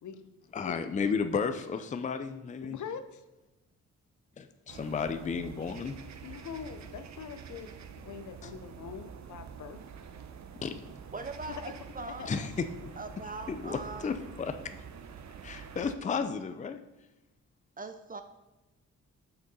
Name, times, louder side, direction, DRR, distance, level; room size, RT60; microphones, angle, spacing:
voice 1, 0.0-0.3 0.7-0.8 2.6-3.2 6.2-9.8 11.5-12.5, left 7 dB, 75° left, 10 dB, 0.8 m, -43 dB
voice 2, 0.5-2.8 4.4-6.0 8.4-8.5 10.6-10.7 12.2-12.7 13.5-14.6 15.4-16.8, left 5 dB, 25° left, 9 dB, 0.5 m, -33 dB
sound 1, 4.7-16.0, right 6 dB, 65° right, 0.7 m, -47 dB
voice 3, 11.1-12.4 13.0-14.1 17.8-18.2, right 3 dB, 30° right, 8 dB, 0.5 m, -41 dB
6.6 x 5.9 x 5.4 m, 1.0 s
cardioid pair, 110°, 30 cm